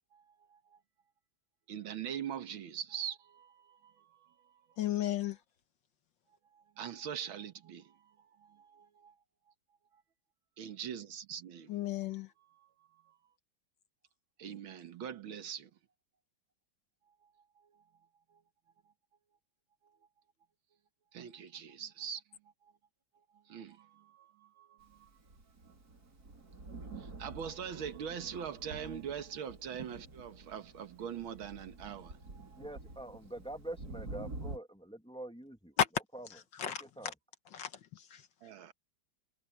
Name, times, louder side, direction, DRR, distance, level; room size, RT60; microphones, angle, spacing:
voice 1, 1.7-4.7 6.5-8.1 8.4-9.1 10.6-11.7 12.6-12.7 13.1-13.2 14.4-15.7 21.1-22.2 23.5-25.1 27.0-32.6 38.4-38.7, right 8 dB, 85° right, 2.1 m, -43 dB
voice 2, 4.8-5.4 11.7-12.3 35.8-35.9 36.6-36.8 37.5-38.3, left 10 dB, 70° left, 1.7 m, -33 dB
Thunder, 25.1-34.6, right 2 dB, 50° right, 3.8 m, -48 dB
voice 3, 32.6-35.8 36.1-36.3 36.7-37.1, right 1 dB, 5° left, 1.9 m, -45 dB
omnidirectional pair, 2.2 m